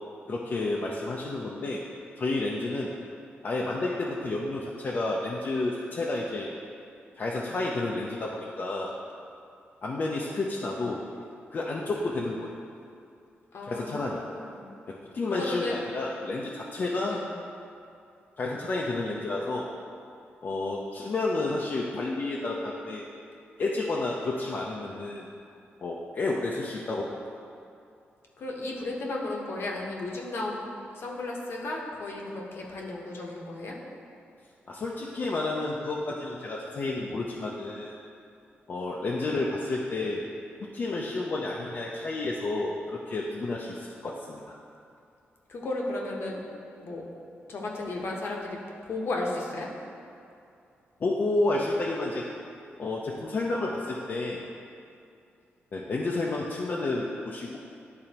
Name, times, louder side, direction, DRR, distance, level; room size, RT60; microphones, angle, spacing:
voice 1, 0.3-1.8 2.2-2.9 3.4-6.5 7.2-8.9 9.8-11.0 11.5-12.5 13.6-14.2 14.9-17.2 18.4-19.6 20.4-23.0 23.6-25.3 25.8-27.1 34.7-37.9 38.7-40.2 40.7-44.6 51.0-52.2 52.8-54.4 55.7-57.6, left 2 dB, 50° left, -3 dB, 0.6 m, -30 dB
voice 2, 13.5-14.7 15.3-15.8 16.9-17.3 28.4-30.6 30.9-33.8 45.5-46.4 46.8-47.0 47.5-49.7, left 2 dB, 65° left, -1 dB, 1.0 m, -34 dB
10.5 x 3.9 x 2.9 m, 2.5 s
cardioid pair, 90°, 4 cm